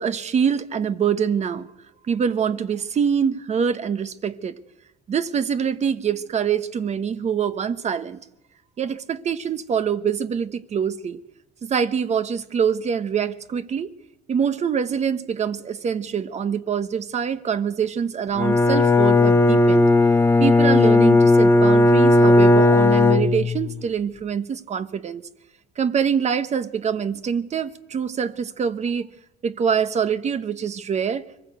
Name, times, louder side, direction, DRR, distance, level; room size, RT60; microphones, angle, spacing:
voice 1, 0.0-1.7 2.1-4.6 5.1-8.2 8.8-11.2 11.6-13.9 14.3-19.9 20.4-25.2 25.8-29.1 29.4-31.3, right 7 dB, 40° right, 1.1 m, -24 dB
Bowed string instrument, 18.4-23.8, left 2 dB, 15° left, 1.1 m, -16 dB
23.5 x 15.5 x 8.1 m
cardioid pair, 110°, 17 cm